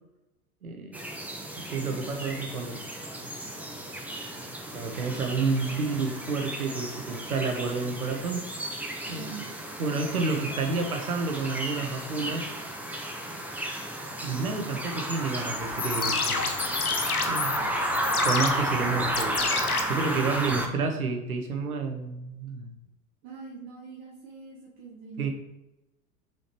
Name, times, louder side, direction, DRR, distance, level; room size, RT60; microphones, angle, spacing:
voice 1, 0.6-1.0 1.5-2.8 4.7-8.4 9.1-9.3 9.8-12.5 14.2-16.4 17.2-17.6 18.2-19.4 19.8-22.8 25.2-25.3, right 4 dB, 80° right, 4 dB, 1.2 m, -30 dB
sound 1, 0.9-20.7, right 1 dB, 5° right, 0.9 m, -33 dB
voice 2, 9.0-9.5 18.8-19.5 23.2-25.3, right 4 dB, 45° right, -4 dB, 1.4 m, -44 dB
sound 2, 15.6-20.6, left 5 dB, 85° left, 0.8 m, -31 dB
6.4 x 5.1 x 3.0 m, 0.98 s
figure-of-eight pair, 80°, 43 cm